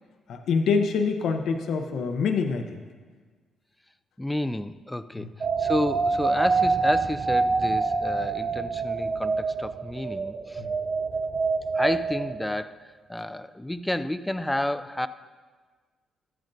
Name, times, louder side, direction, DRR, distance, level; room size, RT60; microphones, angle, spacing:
voice 1, 0.3-2.8 5.2-5.3 10.6-10.7, left 5 dB, 70° left, 6 dB, 0.6 m, -26 dB
voice 2, 4.2-10.6 11.7-15.1, left 1 dB, 10° left, 13 dB, 0.4 m, -30 dB
sound 1, 5.4-12.7, right 4 dB, 50° right, 0.4 m, -26 dB
13.0 x 8.9 x 2.6 m, 1.5 s
hypercardioid pair, 50°, 0 cm